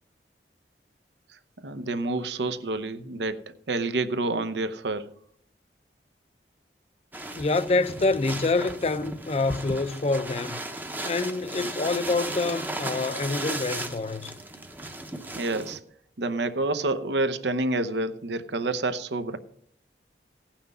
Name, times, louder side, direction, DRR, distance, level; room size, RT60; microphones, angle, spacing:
voice 1, 1.6-5.1 15.4-15.8 16.2-19.4, right 2 dB, 80° right, 0.8 m, -28 dB
sound 1, 7.1-15.8, right 1 dB, 10° right, 0.7 m, -36 dB
voice 2, 7.4-10.6 11.0-14.3, left 3 dB, 35° left, 0.4 m, -26 dB
16.5 x 5.9 x 5.4 m
head